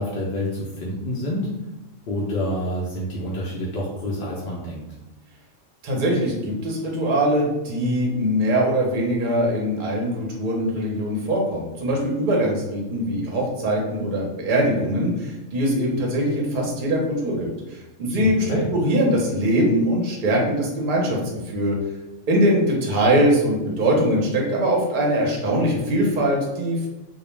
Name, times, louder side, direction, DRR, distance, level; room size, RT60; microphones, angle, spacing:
voice 1, 0.0-1.5 2.1-4.8 18.2-18.6, left 1 dB, 65° left, -5 dB, 0.6 m, -28 dB
voice 2, 5.8-21.2 21.5-21.8 22.3-26.9, equal, 50° right, -2 dB, 0.7 m, -22 dB
2.3 x 2.1 x 3.0 m, 1.0 s
omnidirectional pair, 1.4 m